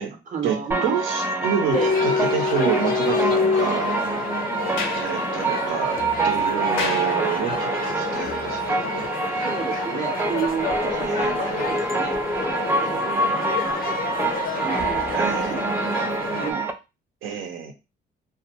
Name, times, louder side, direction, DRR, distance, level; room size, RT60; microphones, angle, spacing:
voice 1, 0.3-0.9 1.7-1.9 9.3-16.7, right 5 dB, 40° right, 5 dB, 0.7 m, -32 dB
sound 1, 0.7-16.7, right 3 dB, 10° right, 0.3 m, -26 dB
voice 2, 0.8-4.3 4.9-6.0 6.2-9.5 11.0-11.6 15.1-15.6 17.2-17.7, right 7 dB, 85° right, 4 dB, 0.7 m, -28 dB
sound 2, 1.7-16.5, left 5 dB, 45° left, 0.5 m, -28 dB
Sliding door, 4.6-7.8, left 4 dB, 80° left, 0.7 m, -34 dB
2.3 x 2.2 x 2.8 m, 0.27 s
cardioid pair, 90°, 20 cm